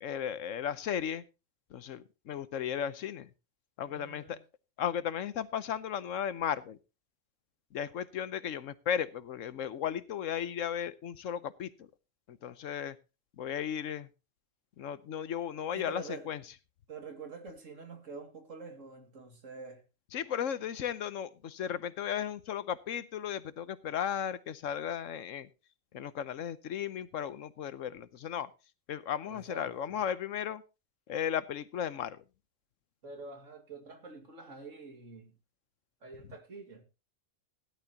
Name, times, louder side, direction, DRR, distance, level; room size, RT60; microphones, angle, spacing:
voice 1, 0.0-1.2 1.7-3.3 3.8-4.4 4.8-6.8 7.7-11.9 12.3-13.0 13.4-14.1 14.8-16.4 20.1-25.5 25.9-28.5 28.9-30.6 31.1-32.2, left 9 dB, 90° left, 1.2 m, -35 dB
voice 2, 3.9-4.4 15.7-16.3 16.9-19.8 29.3-30.0 33.0-35.3 36.0-36.8, right 3 dB, 85° right, 2.6 m, -46 dB
17.0 x 11.5 x 2.9 m
omnidirectional pair, 1.3 m